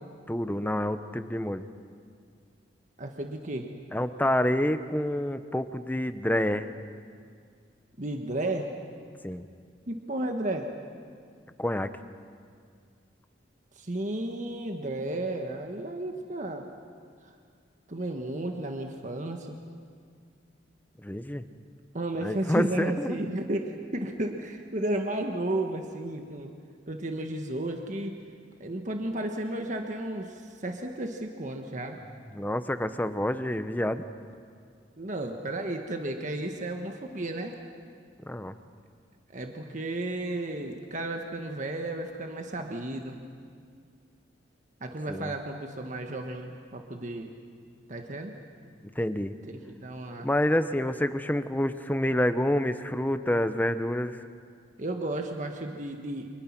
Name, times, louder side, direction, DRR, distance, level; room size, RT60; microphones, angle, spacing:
voice 1, 0.3-1.7 3.9-6.7 9.2-9.4 11.6-11.9 21.0-21.4 22.2-23.2 32.3-34.1 38.3-38.5 45.1-45.3 49.0-49.3 50.2-54.2, left 1 dB, 10° left, 10 dB, 0.9 m, -28 dB
voice 2, 3.0-3.7 8.0-8.7 9.9-10.7 13.8-16.7 17.9-19.6 21.9-26.5 26.9-28.2 28.6-32.0 35.0-37.6 39.3-43.2 44.8-47.3 47.9-48.4 49.7-50.3 54.8-56.3, right 1 dB, 45° right, 4 dB, 1.5 m, -33 dB
29.5 x 26.0 x 6.1 m, 2.2 s
head